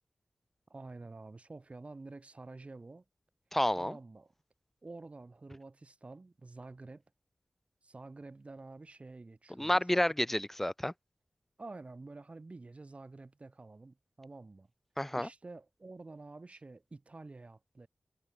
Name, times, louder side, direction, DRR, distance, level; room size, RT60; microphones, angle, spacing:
voice 1, 0.7-3.0 3.8-4.3 4.8-7.0 7.8-9.8 11.6-14.7 15.1-17.9, right 3 dB, 45° right, 4.8 m, -49 dB
voice 2, 3.5-4.0 9.6-10.9 15.0-15.3, left 1 dB, 10° left, 0.4 m, -30 dB
wide cardioid pair, 70°, 3 cm